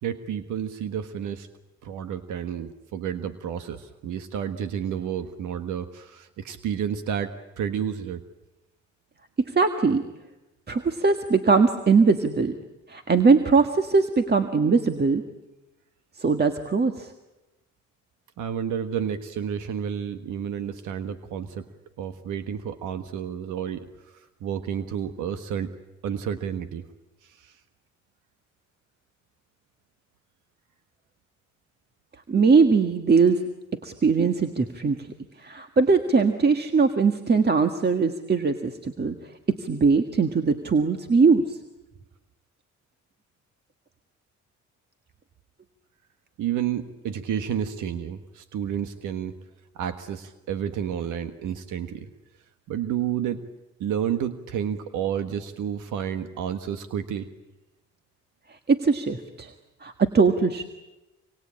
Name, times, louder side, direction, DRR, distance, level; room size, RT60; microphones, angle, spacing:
voice 1, 0.0-1.5 1.8-8.2 18.4-21.6 22.0-23.9 24.4-25.7 26.0-26.9 27.2-27.6 46.4-49.4 49.7-52.1 52.7-53.4 53.8-57.3, right 8 dB, 85° right, 9 dB, 1.4 m, -30 dB
voice 2, 9.4-10.0 10.7-12.5 12.9-15.2 16.2-17.1 32.3-33.4 33.8-35.1 35.4-39.1 39.5-41.6 58.5-59.5 59.8-60.7, right 4 dB, 35° right, 7 dB, 1.6 m, -21 dB
26.5 x 23.5 x 8.7 m, 1.0 s
cardioid pair, 90°, 30 cm